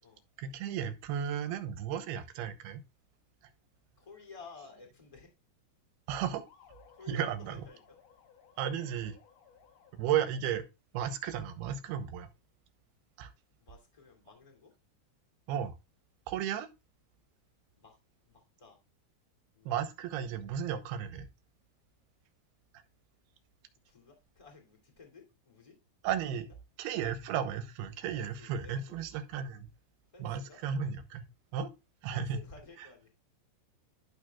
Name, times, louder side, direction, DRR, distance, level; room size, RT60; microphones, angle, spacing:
voice 1, 0.4-2.8 6.1-6.5 7.1-7.7 8.6-9.2 9.9-10.6 10.9-12.3 13.2-13.3 15.5-15.8 16.3-16.7 19.7-21.3 26.0-26.5 26.8-29.7 30.2-31.7 32.0-32.4 32.8-32.9, right 8 dB, 80° right, 2.8 m, -34 dB
voice 2, 4.0-5.3 6.9-8.0 13.6-14.7 17.8-18.0 18.2-18.8 19.5-19.7 23.9-25.7 26.3-26.4 28.1-29.0 30.1-30.6 32.1-33.1, left 4 dB, 15° left, 1.4 m, -54 dB
sound 1, 6.5-10.3, left 8 dB, 75° left, 1.5 m, -61 dB
11.5 x 6.6 x 2.3 m
omnidirectional pair, 4.7 m